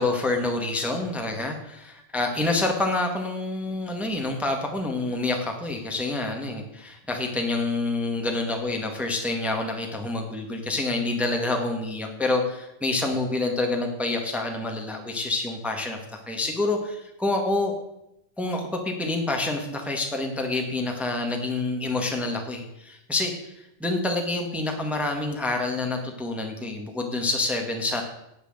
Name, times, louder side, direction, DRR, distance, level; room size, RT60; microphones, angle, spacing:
voice 1, 0.0-17.7 18.4-23.3 23.8-28.0, left 2 dB, ahead, 2 dB, 0.5 m, -27 dB
18.0 x 6.7 x 8.0 m, 0.84 s
omnidirectional pair, 4.1 m